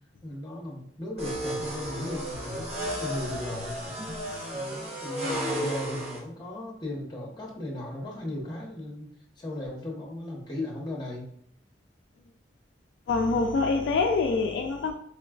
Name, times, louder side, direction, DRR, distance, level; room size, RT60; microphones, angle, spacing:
voice 1, 0.2-3.9 4.5-9.1 9.4-11.3, left 1 dB, 25° left, -2 dB, 0.9 m, -36 dB
sound 1, 1.2-6.2, equal, 35° right, 0.8 m, -33 dB
voice 2, 13.1-14.9, left 4 dB, 70° left, 3 dB, 0.3 m, -25 dB
5.0 x 2.3 x 2.3 m, 0.66 s
head